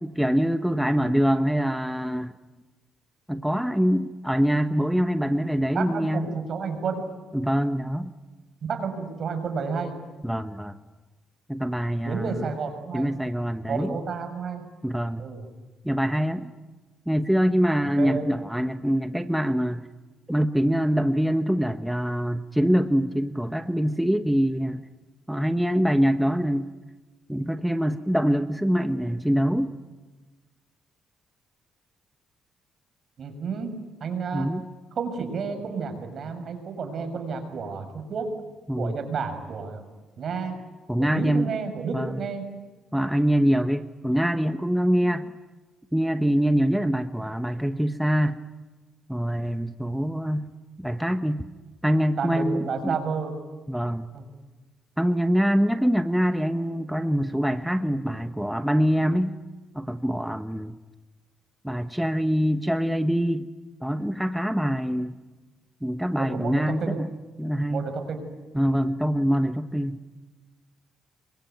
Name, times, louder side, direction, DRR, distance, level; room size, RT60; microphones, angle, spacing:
voice 1, 0.0-2.3 3.3-6.4 7.3-8.1 10.2-10.7 11.5-12.5 12.9-14.0 14.8-15.2 15.8-16.5 17.1-19.8 20.3-24.8 25.3-26.7 27.3-29.7 34.3-34.6 38.7-38.9 40.9-41.5 41.9-42.2 42.9-45.3 45.9-48.4 49.1-50.5 50.8-51.4 51.8-53.0 53.7-54.1 55.0-59.4 59.7-60.7 61.6-63.5 63.8-65.2 65.8-67.1 67.4-67.8 68.5-70.0, equal, 5° right, 9 dB, 1.0 m, -24 dB
voice 2, 5.7-7.0 8.7-10.0 12.0-13.1 13.7-14.6 15.2-15.5 17.9-18.3 33.2-33.7 34.0-34.5 35.0-38.3 38.8-39.8 40.2-40.6 41.0-42.4 52.2-53.3 54.1-54.3 66.1-67.0 67.7-68.2, right 5 dB, 55° right, 7 dB, 6.5 m, -31 dB
27.0 x 23.5 x 9.3 m, 1.2 s
cardioid pair, 90°, 0 cm